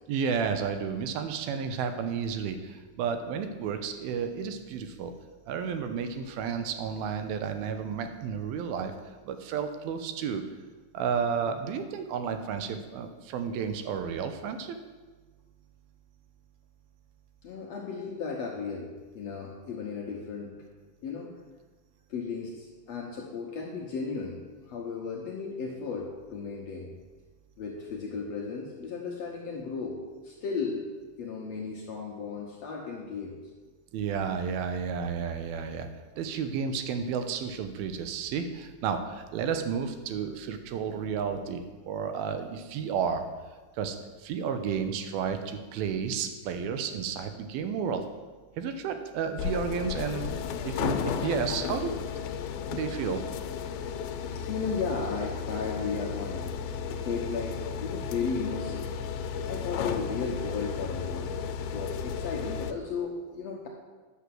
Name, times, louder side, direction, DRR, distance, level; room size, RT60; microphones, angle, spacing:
voice 1, 0.1-5.1 5.5-8.9 9.2-10.4 10.9-14.8 33.9-35.9 36.2-43.3 43.8-44.0 44.2-48.0 48.6-51.9 52.7-53.2, right 6 dB, 80° right, 8 dB, 2.7 m, -32 dB
voice 2, 17.4-18.9 19.1-20.5 21.0-21.3 22.1-26.9 27.6-30.9 31.2-33.3 54.5-59.0 59.5-61.3 61.7-63.7, left 5 dB, 65° left, -1 dB, 1.7 m, -35 dB
sound 1, 49.4-62.7, left 7 dB, 80° left, 2.6 m, -34 dB
9.9 x 6.9 x 7.6 m, 1.3 s
omnidirectional pair, 4.3 m